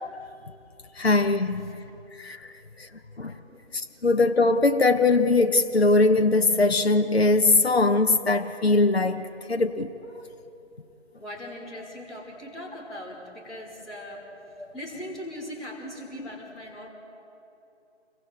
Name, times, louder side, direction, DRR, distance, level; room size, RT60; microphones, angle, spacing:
voice 1, 1.0-1.8 2.2-2.4 2.8-2.9 3.2-3.3 3.7-9.9, left 3 dB, 60° left, 6 dB, 1.1 m, -21 dB
voice 2, 11.2-14.2 14.7-16.9, left 1 dB, ahead, -13 dB, 1.8 m, -39 dB
29.0 x 23.5 x 4.5 m, 2.9 s
figure-of-eight pair, 160°, 35 cm